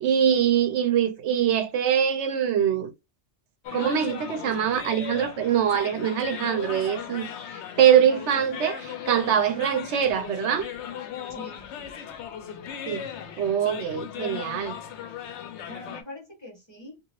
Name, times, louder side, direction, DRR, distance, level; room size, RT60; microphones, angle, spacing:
voice 1, 0.0-2.9 3.7-7.3 7.8-10.7 12.9-13.0 13.4-14.7, right 9 dB, 80° right, 0.9 m, -23 dB
sound 1, 3.6-16.0, left 8 dB, 80° left, 0.9 m, -38 dB
voice 2, 6.4-7.2 11.3-11.6 14.2-14.5 15.6-17.0, left 3 dB, 25° left, 1.2 m, -41 dB
2.8 x 2.5 x 2.9 m
omnidirectional pair, 1.2 m